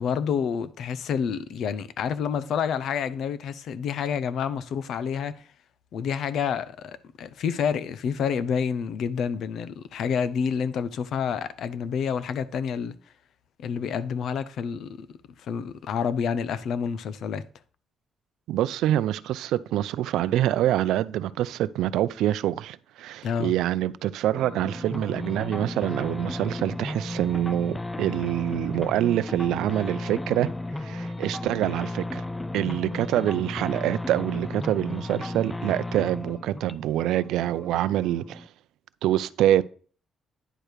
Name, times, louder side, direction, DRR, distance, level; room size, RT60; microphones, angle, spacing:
voice 1, 0.0-5.5 5.9-12.9 13.6-15.1 15.4-17.4 23.2-23.5, left 7 dB, 70° left, 0.7 m, -28 dB
voice 2, 18.5-32.3 32.5-38.5 39.0-39.6, right 13 dB, 85° right, 0.4 m, -26 dB
sound 1, 24.4-38.5, left 2 dB, 15° left, 0.4 m, -34 dB
10.0 x 4.5 x 5.1 m
cardioid pair, 90°, 0 cm